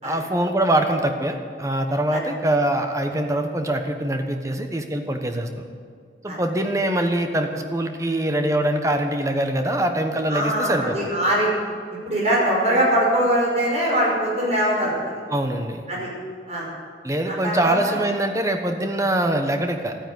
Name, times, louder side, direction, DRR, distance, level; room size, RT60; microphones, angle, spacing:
voice 1, 0.0-5.5 6.2-11.1 15.3-15.9 17.0-20.0, right 1 dB, 15° right, 5 dB, 1.1 m, -23 dB
voice 2, 10.3-11.5 12.0-14.9 15.9-16.1 16.5-16.7 17.4-18.0, right 1 dB, 40° right, -4 dB, 5.4 m, -22 dB
13.0 x 9.7 x 9.4 m, 2.1 s
head